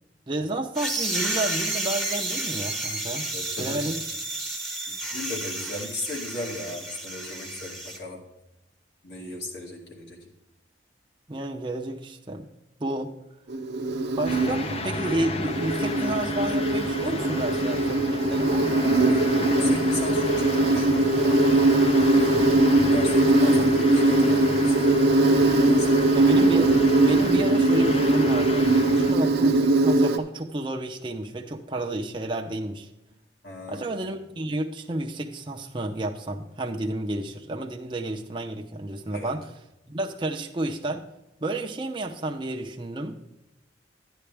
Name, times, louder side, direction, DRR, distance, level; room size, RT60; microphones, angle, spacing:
voice 1, 0.3-3.3 3.6-4.0 11.3-12.5 12.8-13.1 14.2-19.8 26.1-32.9 33.7-39.5 39.9-41.1 41.4-43.2, right 1 dB, 25° right, 2 dB, 0.6 m, -31 dB
sound 1, 0.8-8.0, right 2 dB, ahead, 0.9 m, -31 dB
voice 2, 3.3-3.9 4.9-8.2 9.0-10.3 19.1-21.7 22.1-22.5 22.8-25.0 25.7-25.9 33.4-33.9 39.1-39.3, left 2 dB, 65° left, 0 dB, 2.2 m, -37 dB
Insect, 13.5-30.2, right 2 dB, 60° right, 0.8 m, -21 dB
sound 2, 14.3-29.1, left 3 dB, 30° left, 0.6 m, -34 dB
11.0 x 9.7 x 3.4 m, 0.92 s
head